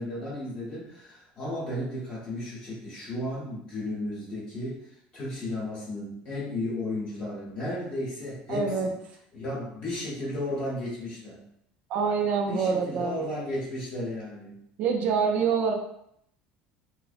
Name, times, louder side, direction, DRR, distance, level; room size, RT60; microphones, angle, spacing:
voice 1, 0.0-4.8 5.1-9.0 9.3-11.4 12.5-14.6, left 1 dB, 35° left, -6 dB, 0.8 m, -34 dB
voice 2, 8.5-8.9 11.9-13.2 14.8-15.7, right 5 dB, 50° right, 3 dB, 0.4 m, -25 dB
2.5 x 2.0 x 2.4 m, 0.73 s
cardioid pair, 155°, 3 cm